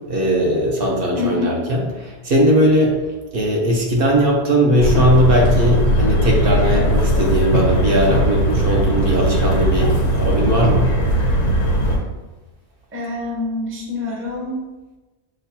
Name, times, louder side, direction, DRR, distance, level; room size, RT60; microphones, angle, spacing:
voice 1, 0.1-3.0 3.3-10.9, equal, 60° right, -1 dB, 0.9 m, -18 dB
voice 2, 1.1-1.6 12.9-14.6, left 2 dB, 15° right, -3 dB, 0.6 m, -26 dB
sound 1, 4.8-12.0, equal, 80° left, 1.2 m, -18 dB
6.2 x 2.3 x 2.7 m, 1.2 s
omnidirectional pair, 1.1 m